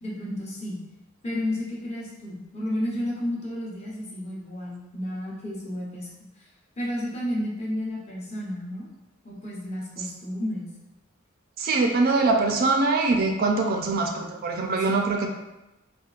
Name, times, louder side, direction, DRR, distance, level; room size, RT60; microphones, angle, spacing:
voice 1, 0.0-0.8 1.2-6.1 6.4-6.5 6.8-8.9 9.2-10.7 14.9-15.0, left 1 dB, 30° left, -5 dB, 0.8 m, -32 dB
voice 2, 11.6-15.3, right 3 dB, 45° right, 2 dB, 0.4 m, -23 dB
4.4 x 2.3 x 2.4 m, 0.99 s
head